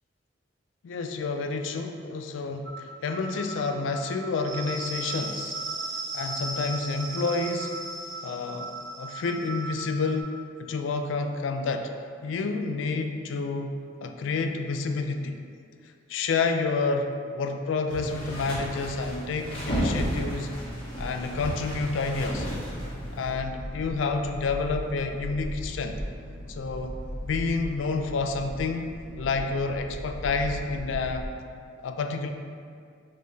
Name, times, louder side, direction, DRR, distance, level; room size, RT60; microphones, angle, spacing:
voice 1, 0.8-5.6 6.1-7.7 8.2-8.7 9.0-11.9 12.2-13.7 14.0-15.4 16.1-20.5 21.0-22.5 23.1-26.0 26.5-27.0 27.3-28.9 29.2-31.3 31.8-32.3, left 4 dB, 80° left, 5 dB, 0.4 m, -29 dB
sound 1, 2.7-10.2, right 2 dB, 75° right, 0.5 m, -36 dB
sound 2, 17.9-23.4, equal, 30° left, 1.2 m, -33 dB
sound 3, 20.6-31.3, equal, 50° right, 1.2 m, -38 dB
6.2 x 3.1 x 2.7 m, 2.2 s
head